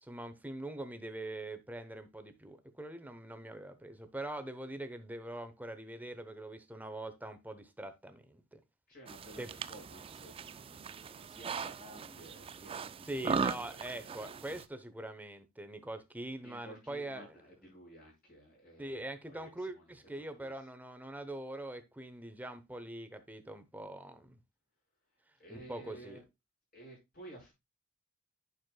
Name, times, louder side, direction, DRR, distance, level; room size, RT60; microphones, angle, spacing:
voice 1, 0.0-8.6 9.4-9.5 13.0-17.3 18.8-24.4 25.5-26.2, right 1 dB, 10° right, 0.8 m, -43 dB
voice 2, 8.9-9.4 9.7-14.3 16.4-19.8 20.2-20.5 25.4-26.2 26.7-27.5, right 1 dB, 45° left, 5.3 m, -54 dB
sound 1, 9.1-14.6, right 5 dB, 25° right, 0.3 m, -39 dB
9.2 x 6.4 x 2.3 m
head